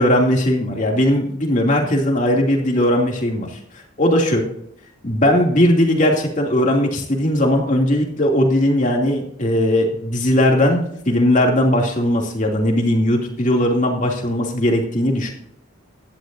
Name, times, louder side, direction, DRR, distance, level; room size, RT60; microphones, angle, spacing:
voice 1, 0.0-3.6 4.0-4.5 5.0-15.3, left 1 dB, 40° left, 0 dB, 2.7 m, -18 dB
16.5 x 12.0 x 2.7 m, 0.68 s
head